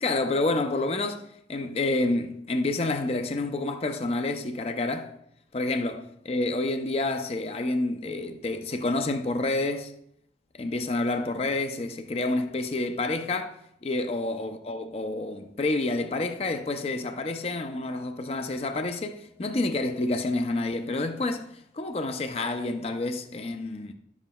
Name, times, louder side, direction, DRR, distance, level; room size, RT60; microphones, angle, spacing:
voice 1, 0.0-5.1 5.5-9.9 10.5-13.6 13.8-23.9, left 2 dB, 35° left, 0.4 m, -29 dB
11.0 x 7.1 x 2.2 m
head